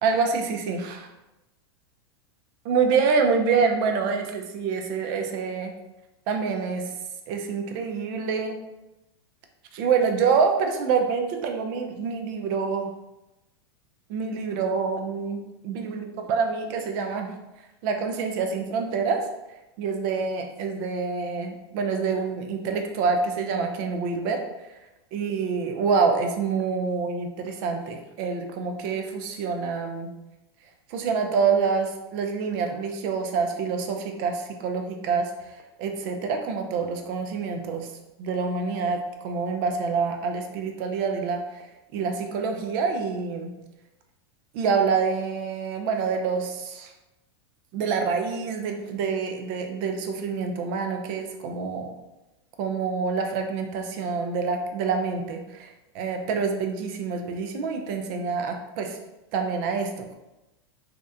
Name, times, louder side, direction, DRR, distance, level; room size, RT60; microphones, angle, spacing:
voice 1, 0.0-1.1 2.6-5.7 6.3-6.9 7.3-8.6 9.7-12.9 14.1-17.3 17.8-19.2 19.8-24.4 25.1-30.1 30.9-35.5 35.8-37.9 38.2-41.7 41.9-43.5 44.5-46.9 47.7-51.9 52.6-59.0 59.3-60.2, right 5 dB, 50° right, 4 dB, 0.4 m, -26 dB
2.8 x 2.0 x 2.3 m, 0.98 s
hypercardioid pair, 125°, 14 cm